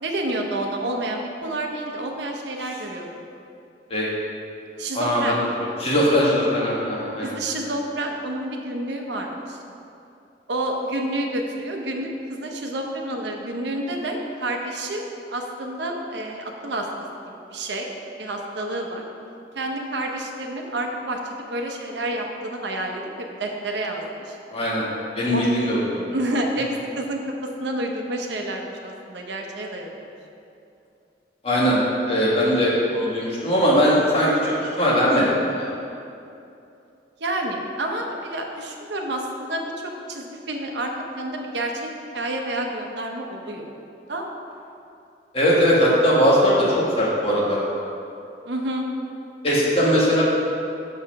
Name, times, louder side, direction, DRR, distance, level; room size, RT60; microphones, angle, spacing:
voice 1, 0.0-3.2 4.8-5.4 6.5-6.6 7.2-9.6 10.5-15.0 15.3-16.9 17.5-17.9 18.2-19.0 19.5-24.4 25.3-25.5 26.1-30.1 37.2-41.8 42.1-43.7 44.1-44.2 48.4-48.9, right 1 dB, 75° right, 2 dB, 0.9 m, -29 dB
voice 2, 4.9-5.5 5.8-7.3 24.5-24.8 25.1-26.0 31.4-35.7 45.3-47.6 49.4-50.2, equal, 35° left, -6 dB, 1.7 m, -20 dB
7.0 x 4.9 x 5.9 m, 2.7 s
head